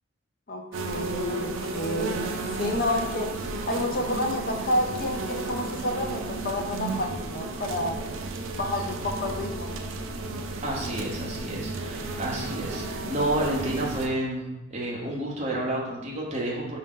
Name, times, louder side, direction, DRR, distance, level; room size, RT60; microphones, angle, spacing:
voice 1, 0.5-2.3 2.6-3.3 3.7-8.0 8.5-9.7, left 1 dB, 45° left, 3 dB, 0.6 m, -29 dB
sound 1, 0.7-14.1, right 3 dB, 80° right, 0.5 m, -33 dB
voice 2, 10.6-16.8, right 1 dB, 35° right, -3 dB, 0.9 m, -30 dB
5.0 x 2.8 x 3.6 m, 0.94 s
head